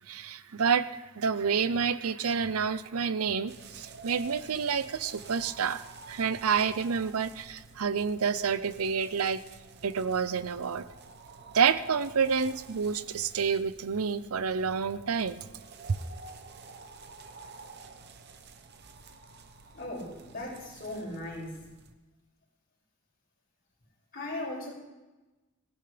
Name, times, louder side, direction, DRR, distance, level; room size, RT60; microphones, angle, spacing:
voice 1, 0.1-0.9 1.2-5.8 6.1-9.4 9.8-10.8 11.5-15.4, right 6 dB, 85° right, 14 dB, 0.6 m, -28 dB
sound 1, 3.5-21.9, right 4 dB, 50° right, 0.9 m, -50 dB
voice 2, 19.7-21.6 24.1-24.7, left 1 dB, 40° left, -4 dB, 6.4 m, -37 dB
18.0 x 16.0 x 3.4 m, 1.1 s
head